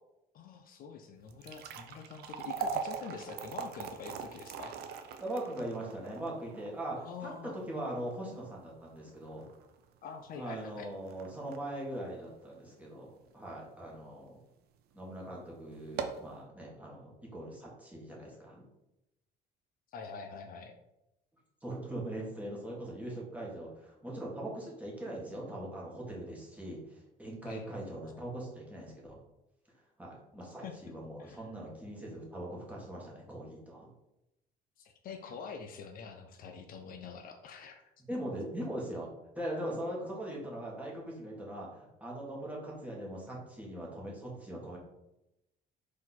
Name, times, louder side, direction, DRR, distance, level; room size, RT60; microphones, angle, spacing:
voice 1, 0.3-4.8 6.9-7.5 10.0-10.9 19.9-20.8 27.5-27.7 30.6-30.8 31.2-31.4 34.8-37.8, left 5 dB, 60° left, 5 dB, 0.5 m, -45 dB
sound 1, 1.2-13.5 13.9-14.0 14.7-14.9 15.2-15.3 15.8-16.3, right 6 dB, 70° right, 0.5 m, -42 dB
voice 2, 5.2-7.3 7.7-9.5 10.4-14.4 14.9-18.6 21.6-29.2 30.0-33.9 38.1-39.1 39.3-44.8, right 1 dB, 10° right, -3 dB, 1.4 m, -41 dB
4.2 x 2.6 x 4.0 m, 0.90 s
cardioid pair, 110°, 17 cm